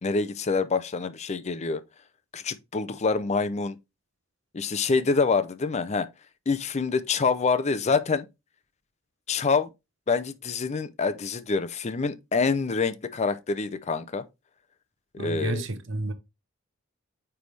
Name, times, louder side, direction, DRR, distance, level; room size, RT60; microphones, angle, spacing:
voice 1, 0.0-1.8 2.3-3.8 4.5-6.1 6.5-8.3 9.3-9.7 10.1-14.2 15.1-15.6, left 4 dB, 35° left, 0.5 m, -26 dB
voice 2, 15.2-16.1, right 2 dB, 65° right, 0.9 m, -30 dB
9.2 x 3.4 x 3.3 m
head